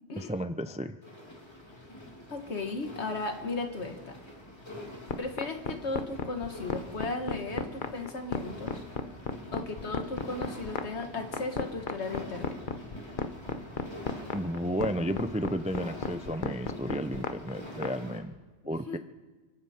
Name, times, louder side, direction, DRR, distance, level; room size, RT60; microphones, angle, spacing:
voice 1, 0.2-1.0 14.3-18.3 18.7-19.0, equal, 10° right, 11 dB, 0.3 m, -32 dB
sound 1, 1.0-18.2, left 1 dB, 25° left, 2.5 m, -46 dB
voice 2, 2.3-4.2 5.2-8.8 9.5-12.6 18.6-19.0, left 3 dB, 80° left, 5 dB, 1.9 m, -36 dB
sound 2, 5.1-17.9, left 5 dB, 50° left, 1.0 m, -33 dB
29.5 x 11.0 x 4.4 m, 1.3 s
omnidirectional pair, 1.1 m